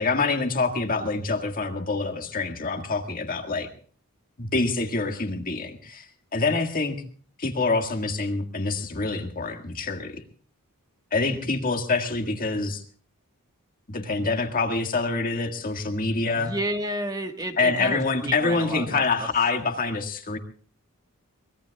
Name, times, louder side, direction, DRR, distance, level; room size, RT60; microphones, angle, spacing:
voice 1, 0.0-3.7 4.4-6.1 6.3-7.0 7.4-10.2 11.1-12.8 13.9-16.5 17.6-20.4, left 3 dB, 40° left, 5 dB, 1.8 m, -26 dB
voice 2, 16.3-19.3, right 1 dB, 15° right, 5 dB, 1.5 m, -31 dB
24.5 x 20.5 x 2.3 m, 0.43 s
head